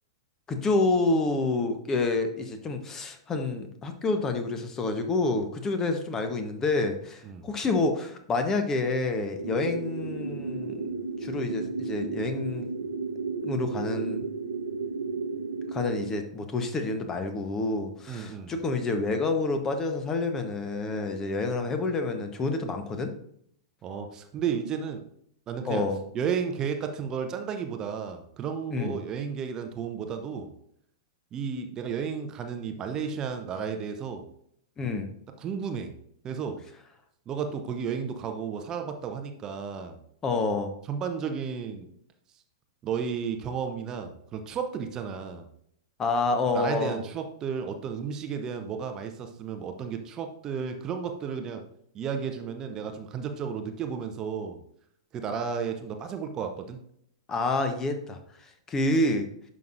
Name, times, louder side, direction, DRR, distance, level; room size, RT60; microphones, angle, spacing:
voice 1, 0.5-10.7 11.2-12.7 13.4-14.3 15.7-23.1 25.6-26.0 28.7-29.0 34.8-35.1 40.2-40.7 46.0-47.0 57.3-59.3, left 3 dB, 20° left, 7 dB, 1.1 m, -28 dB
sound 1, 9.4-16.1, right 4 dB, 75° right, 1.0 m, -33 dB
voice 2, 18.1-18.5 23.8-25.0 25.5-25.9 26.1-30.5 31.3-34.3 35.4-35.9 36.2-36.6 37.3-40.0 40.9-41.9 42.8-45.5 46.5-51.6 51.9-54.6 55.1-56.8, right 6 dB, 25° right, 6 dB, 0.8 m, -33 dB
10.5 x 6.1 x 2.6 m, 0.69 s
figure-of-eight pair, 100°, 2 cm